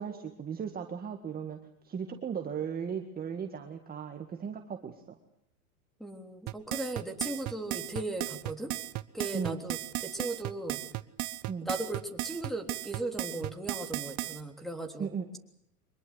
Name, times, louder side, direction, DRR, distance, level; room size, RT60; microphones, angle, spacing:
voice 1, 0.0-1.6 1.8-5.2 9.3-9.7 11.5-11.7 15.0-15.4, right 7 dB, 20° right, 4 dB, 1.9 m, -37 dB
voice 2, 6.0-8.7 9.1-10.8 11.6-15.1, right 2 dB, ahead, 6 dB, 3.4 m, -37 dB
sound 1, 6.5-14.4, right 18 dB, 40° right, 1.1 m, -35 dB
24.5 x 21.5 x 8.0 m, 0.73 s
supercardioid pair, 125°, 44 cm